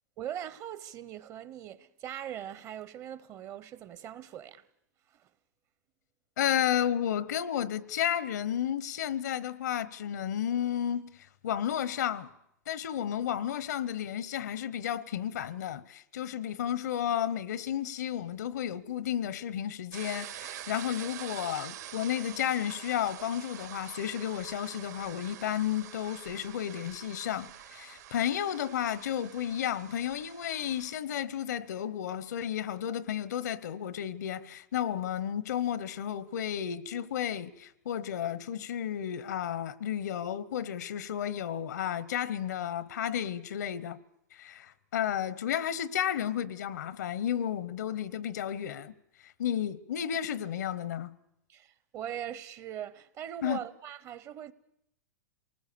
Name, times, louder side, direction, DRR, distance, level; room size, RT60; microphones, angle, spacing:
voice 1, 0.2-4.7 5.1-5.3 51.5-54.5, right 10 dB, 35° right, 0.9 m, -41 dB
voice 2, 6.4-12.3 12.7-44.0 44.3-48.9 49.4-51.1 53.4-53.6, left 10 dB, 80° left, 1.0 m, -32 dB
sound 1, 19.9-30.9, right 11 dB, 75° right, 2.9 m, -46 dB
27.5 x 19.5 x 6.9 m
hypercardioid pair, 125°, 9 cm